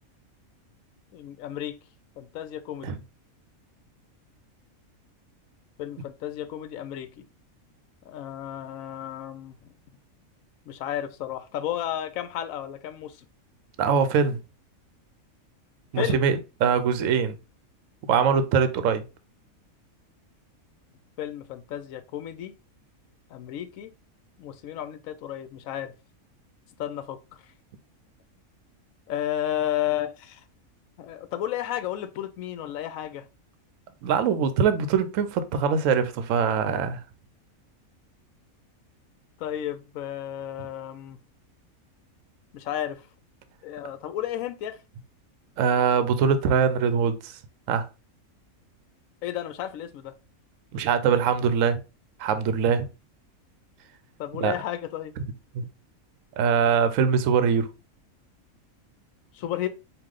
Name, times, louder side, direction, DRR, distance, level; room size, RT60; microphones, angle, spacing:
voice 1, 1.1-1.8 2.2-2.9 5.8-7.2 8.0-9.7 10.7-13.2 16.0-16.3 21.2-22.5 23.3-23.9 24.4-25.9 26.8-27.2 29.1-30.4 31.0-33.3 39.4-41.2 42.5-43.0 43.6-44.8 49.2-50.1 54.2-55.1 59.3-59.7, left 11 dB, 75° left, 1.0 m, -32 dB
voice 2, 13.8-14.4 15.9-17.4 18.1-19.0 34.0-37.0 45.6-47.4 47.7-47.9 50.7-51.8 52.2-52.9 54.4-54.5 55.5-55.6 56.4-57.7, right 6 dB, 70° right, 1.0 m, -23 dB
4.9 x 2.6 x 3.7 m
omnidirectional pair, 1.5 m